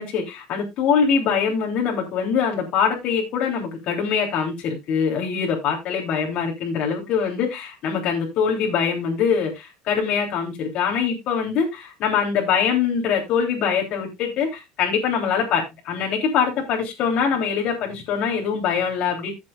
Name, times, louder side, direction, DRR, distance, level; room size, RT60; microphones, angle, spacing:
voice 1, 0.0-19.3, left 6 dB, 55° left, 3.3 m, -23 dB
15.5 x 7.5 x 2.4 m
cardioid pair, 130°, 2 cm